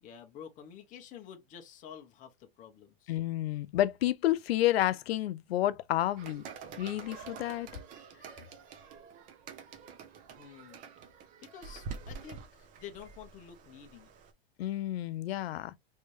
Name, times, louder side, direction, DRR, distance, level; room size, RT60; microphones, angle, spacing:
voice 1, 0.0-3.2 10.4-10.8 11.4-14.1, left 8 dB, 25° left, 0.7 m, -49 dB
voice 2, 3.1-6.4 6.8-7.7 14.6-15.7, left 14 dB, 85° left, 0.5 m, -30 dB
sound 1, 6.2-14.3, right 5 dB, 25° right, 0.6 m, -47 dB
3.3 x 2.7 x 3.1 m
supercardioid pair, 145°, 30 cm